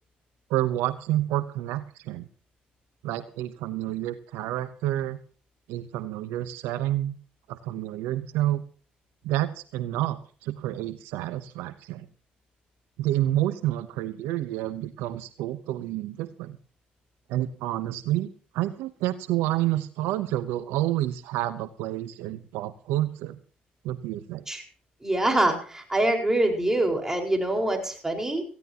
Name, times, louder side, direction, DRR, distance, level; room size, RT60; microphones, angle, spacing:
voice 1, 0.5-2.3 3.0-5.2 5.7-7.2 7.5-8.6 9.2-12.1 13.0-16.6 17.3-23.4 23.8-24.4, right 14 dB, 85° right, 13 dB, 0.8 m, -29 dB
voice 2, 25.0-28.4, right 1 dB, 15° right, 2 dB, 4.7 m, -25 dB
18.5 x 15.5 x 2.9 m, 0.39 s
supercardioid pair, 70°, 4 cm